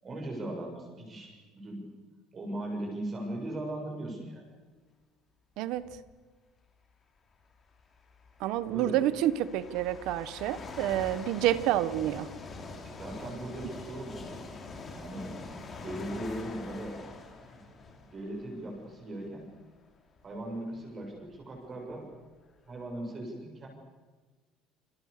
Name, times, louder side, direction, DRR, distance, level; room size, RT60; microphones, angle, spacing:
voice 1, 0.0-1.9 2.3-4.4 8.7-9.0 12.8-14.5 14.9-17.0 17.5-17.6 18.1-19.5 20.2-22.1 22.7-23.7, right 1 dB, 20° right, 1 dB, 7.0 m, -39 dB
voice 2, 5.6-5.9 8.4-12.3, right 13 dB, 55° right, 15 dB, 1.4 m, -28 dB
sound 1, 5.8-6.1 7.2-7.3 8.0-19.4 20.1-20.2 21.0-21.1 21.3-22.9, left 3 dB, 20° left, 3.5 m, -45 dB
27.5 x 27.0 x 6.9 m, 1.4 s
cardioid pair, 175°, 0 cm